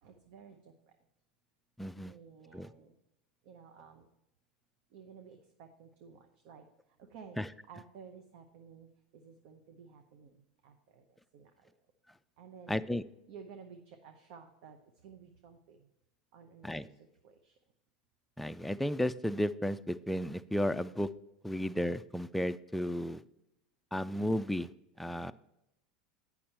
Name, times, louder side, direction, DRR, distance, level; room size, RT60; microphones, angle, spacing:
voice 1, 0.0-0.7 2.1-2.9 3.4-4.1 4.9-6.7 7.0-7.4 7.7-8.9 9.1-11.0 11.3-11.5 12.4-12.8 13.3-15.8 16.3-16.9 17.2-17.5, right 6 dB, 60° right, 5 dB, 0.8 m, -53 dB
voice 2, 1.8-2.1 2.5-2.7 7.4-7.5 12.7-13.0 16.6-16.9 18.4-21.1 21.4-23.2 23.9-24.7 25.0-25.3, left 1 dB, 5° left, 12 dB, 0.3 m, -33 dB
8.6 x 6.0 x 4.3 m, 0.89 s
hypercardioid pair, 90°, 4 cm